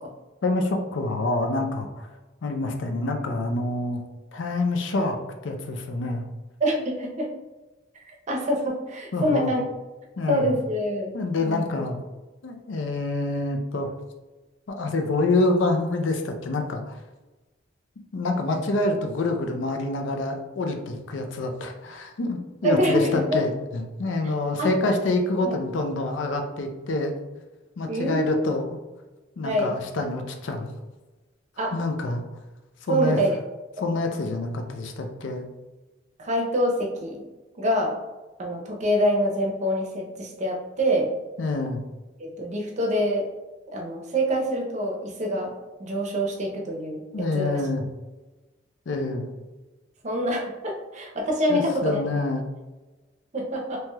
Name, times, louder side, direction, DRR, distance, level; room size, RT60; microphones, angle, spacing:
voice 1, 0.4-2.1 2.4-4.0 4.3-5.2 5.4-6.2 9.1-9.5 10.2-10.5 11.1-12.0 12.4-13.9 14.7-17.0 18.1-27.2 27.8-28.8 29.4-30.7 31.7-32.2 32.9-33.2 33.8-35.5 41.4-41.8 47.1-47.8 48.9-49.3 51.5-52.4, left 2 dB, 80° left, 4 dB, 0.4 m, -26 dB
voice 2, 6.6-7.3 8.0-9.6 10.3-11.1 11.4-11.6 22.6-23.4 24.6-24.7 25.4-25.6 27.8-28.5 29.4-29.8 31.6-31.7 32.9-33.4 36.2-37.2 37.6-38.0 38.4-41.1 42.2-43.2 43.7-45.5 45.8-47.6 50.0-52.0 53.3-53.8, equal, 40° right, 0 dB, 0.6 m, -25 dB
3.1 x 2.8 x 2.2 m, 1.1 s
head